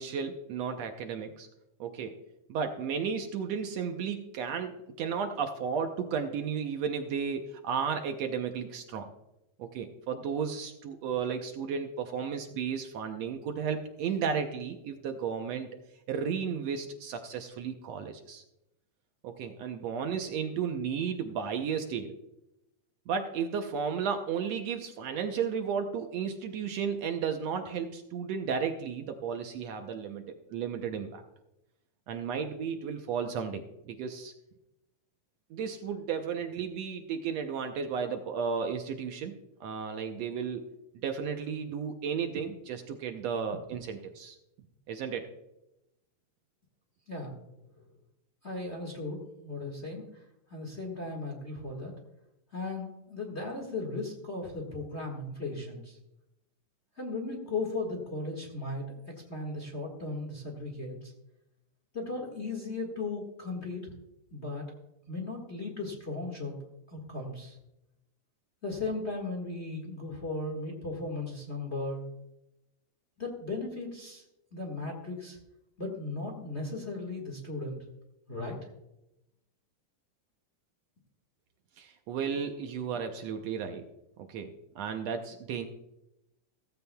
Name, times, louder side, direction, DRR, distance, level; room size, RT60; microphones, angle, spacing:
voice 1, 0.0-1.5 1.8-2.2 2.5-9.1 9.6-15.7 16.1-18.4 19.2-22.1 23.1-31.2 32.1-34.3 35.5-39.3 39.6-40.7 40.9-44.4 44.9-45.3 81.8-83.9 84.2-85.7, right 6 dB, 70° right, 5 dB, 1.8 m, -33 dB
voice 2, 48.4-50.2 50.5-51.9 52.5-56.0 57.0-61.1 61.9-63.9 64.3-64.6 65.1-66.6 66.9-67.6 68.6-72.0 73.2-74.2 74.5-75.4 75.8-77.8 78.3-78.6, left 3 dB, 30° left, 0 dB, 1.5 m, -36 dB
16.0 x 15.0 x 2.3 m, 0.90 s
omnidirectional pair, 3.4 m